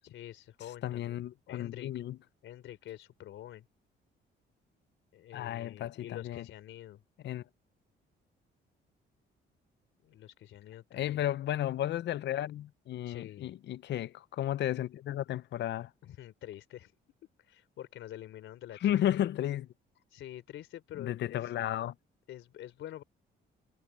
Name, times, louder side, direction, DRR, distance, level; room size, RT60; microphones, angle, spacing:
voice 1, 0.0-1.2 1.5-1.9 2.4-3.6 5.1-7.0 10.0-11.2 13.0-13.5 16.0-17.0 17.4-19.2 20.1-21.5 22.3-23.0, left 12 dB, 80° left, 3.8 m, -47 dB
voice 2, 0.8-2.2 5.3-6.4 7.2-7.4 10.9-15.9 18.8-19.7 21.0-21.9, left 12 dB, 60° left, 0.5 m, -33 dB
cardioid pair, 90°, 20 cm